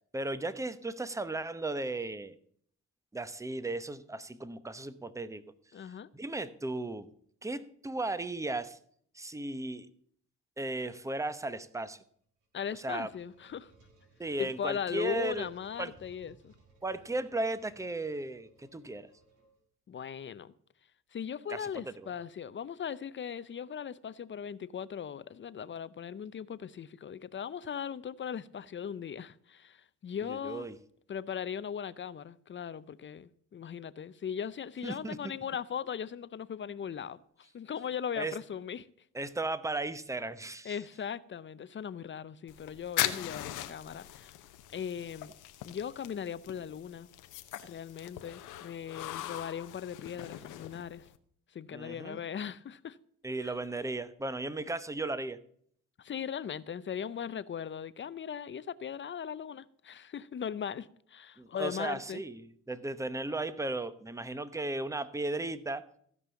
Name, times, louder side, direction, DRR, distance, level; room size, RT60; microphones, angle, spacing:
voice 1, 0.1-2.4 3.1-5.4 6.1-7.1 7.4-8.8 9.1-9.9 10.6-12.0 12.7-13.1 14.2-15.5 15.8-15.9 16.8-19.1 21.5-21.7 22.0-22.1 30.2-30.8 34.8-35.2 38.2-38.4 39.1-40.8 51.7-52.2 53.2-55.4 61.4-65.9, right 2 dB, 10° right, 0.9 m, -36 dB
voice 2, 5.7-6.1 12.5-13.7 14.4-16.5 19.9-20.5 21.1-30.7 31.1-38.9 40.6-44.4 44.7-45.3 45.6-47.1 47.6-51.1 51.5-53.0 56.0-62.2, left 8 dB, 40° left, 0.6 m, -39 dB
sound 1, 12.2-19.9, right 3 dB, 85° right, 4.3 m, -63 dB
sound 2, 42.5-51.2, left 13 dB, 90° left, 0.9 m, -40 dB
15.5 x 5.5 x 7.0 m
cardioid pair, 90°, 30 cm